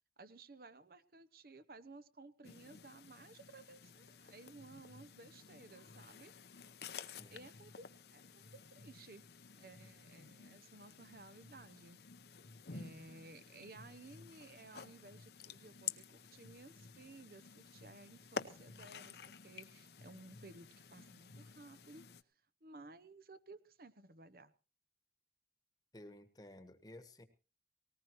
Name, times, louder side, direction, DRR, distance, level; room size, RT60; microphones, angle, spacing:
voice 1, 0.2-6.3 7.3-7.9 8.1-9.2 9.6-12.0 12.7-19.2 19.4-22.0 22.6-24.5, right 3 dB, 55° right, 12 dB, 0.8 m, -56 dB
sound 1, 2.4-22.2, left 6 dB, 65° left, 0.8 m, -51 dB
voice 2, 7.2-7.5 25.9-27.3, left 1 dB, 20° left, 10 dB, 1.2 m, -55 dB
19.0 x 18.5 x 3.0 m, 0.35 s
head